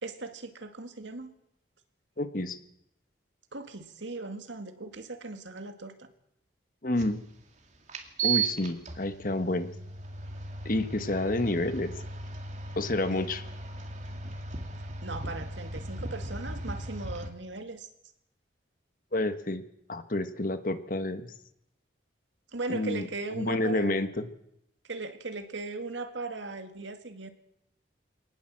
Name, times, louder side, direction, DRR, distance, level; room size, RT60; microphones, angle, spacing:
voice 1, 0.0-1.3 3.5-6.1 13.1-13.2 15.0-17.9 22.5-24.0 24.9-27.3, right 3 dB, 85° right, 7 dB, 2.2 m, -38 dB
voice 2, 2.2-2.6 6.8-7.2 8.2-9.7 10.6-11.9 12.8-13.4 19.1-19.6 19.9-21.3 22.7-24.2, left 2 dB, 45° left, 10 dB, 1.4 m, -29 dB
sound 1, 7.0-7.1 7.9-17.3, right 5 dB, 40° right, 2.4 m, -36 dB
24.5 x 18.5 x 7.6 m, 0.80 s
head